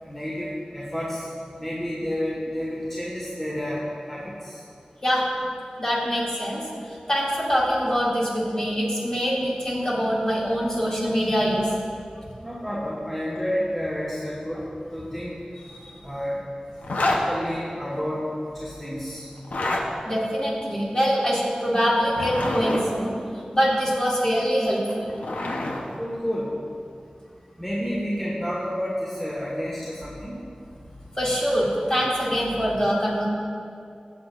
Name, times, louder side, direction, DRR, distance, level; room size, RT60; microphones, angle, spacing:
voice 1, 0.0-1.3 1.6-4.6 12.4-14.6 14.9-15.4 16.0-16.4 17.0-18.2 18.5-19.3 26.0-26.5 27.6-30.4, equal, 10° left, -7 dB, 1.7 m, -30 dB
voice 2, 5.8-11.7 15.7-16.1 20.0-23.2 23.5-25.1 31.1-33.3, equal, 30° left, -6 dB, 2.5 m, -24 dB
Zipper (clothing), 16.8-17.2 19.4-19.8 22.0-22.8 24.7-25.8, left 2 dB, 90° left, 0.9 m, -27 dB
15.0 x 8.1 x 2.6 m, 2.5 s
wide cardioid pair, 70°, 3 cm